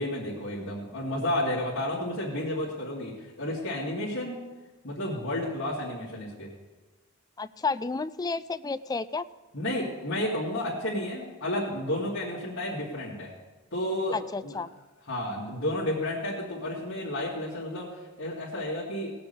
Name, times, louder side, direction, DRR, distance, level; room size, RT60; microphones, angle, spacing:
voice 1, 0.0-4.4 4.8-6.5 9.5-13.3 13.7-14.6 15.0-19.1, left 1 dB, 60° left, -8 dB, 2.4 m, -31 dB
voice 2, 7.4-9.2 14.1-14.7, left 4 dB, 20° left, 13 dB, 0.3 m, -31 dB
17.5 x 6.8 x 6.9 m, 1.2 s
head